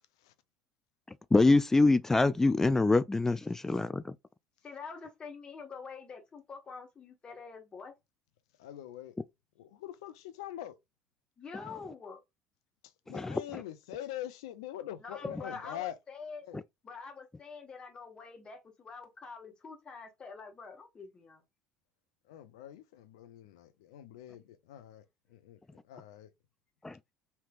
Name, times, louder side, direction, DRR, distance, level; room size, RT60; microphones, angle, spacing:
voice 1, 1.3-4.1 13.1-13.4 16.5-16.6 26.8-26.9, left 3 dB, 15° left, 0.3 m, -25 dB
voice 2, 4.6-7.9 11.4-12.2 15.0-16.5 16.8-21.4, left 5 dB, 35° left, 1.4 m, -46 dB
voice 3, 8.6-9.2 9.6-10.8 13.1-16.0 16.4-16.6 22.3-25.0 25.3-26.3, left 12 dB, 75° left, 0.5 m, -44 dB
3.4 x 2.8 x 2.4 m
hypercardioid pair, 65°, 3 cm